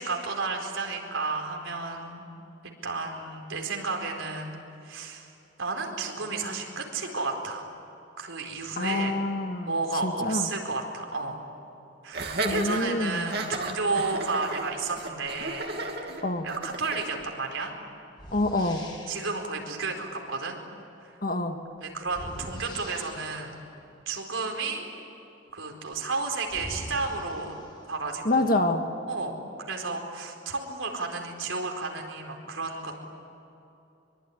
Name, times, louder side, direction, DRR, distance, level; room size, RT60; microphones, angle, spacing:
voice 1, 0.0-2.2 2.6-4.6 4.8-5.3 5.6-7.7 8.2-9.2 9.6-11.4 12.0-15.7 16.4-17.7 19.1-20.6 21.0-21.1 21.8-23.5 24.1-24.9 25.5-27.5 27.9-28.6 29.1-29.4 29.7-32.9, right 3 dB, 80° right, 2 dB, 4.5 m, -32 dB
voice 2, 8.8-9.7 10.0-10.5 12.4-13.3 16.2-16.5 18.3-18.8 21.2-21.6 28.3-28.9, left 2 dB, 45° left, 5 dB, 1.9 m, -26 dB
Laughter, 12.1-17.1, right 2 dB, 55° right, 2.7 m, -33 dB
sound 1, 17.2-17.4 18.1-19.4 22.0-23.6 25.9-26.0 26.5-28.1, equal, 25° left, 3.9 m, -43 dB
24.0 x 24.0 x 10.0 m, 2.8 s
head